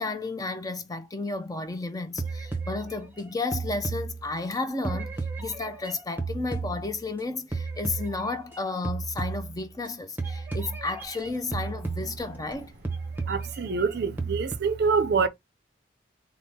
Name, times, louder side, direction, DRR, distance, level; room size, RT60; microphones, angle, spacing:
voice 1, 0.0-12.7, left 3 dB, 20° left, 0.5 m, -32 dB
sound 1, 2.2-4.5 4.8-7.2 7.5-8.6 8.8-9.9 10.2-12.5 12.8-14.6, right 4 dB, 10° right, 0.8 m, -34 dB
voice 2, 13.3-15.3, right 5 dB, 60° right, 0.5 m, -25 dB
3.6 x 2.1 x 4.1 m
head